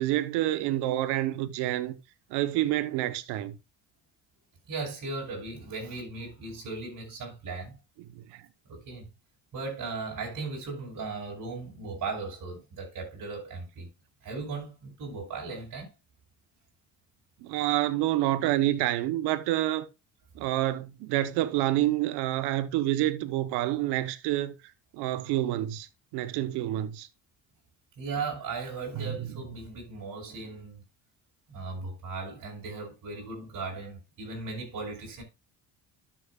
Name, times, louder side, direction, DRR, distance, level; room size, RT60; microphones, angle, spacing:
voice 1, 0.0-2.0 2.3-3.6 8.1-8.4 17.4-19.9 20.4-24.5 24.9-25.9 26.1-27.1, right 14 dB, 85° right, 0.9 m, -28 dB
voice 2, 4.7-7.8 8.7-9.1 9.5-13.9 14.2-15.9 28.0-30.8 31.5-35.2, right 4 dB, 55° right, 5.8 m, -37 dB
12.5 x 7.3 x 2.3 m
supercardioid pair, 85°, 39 cm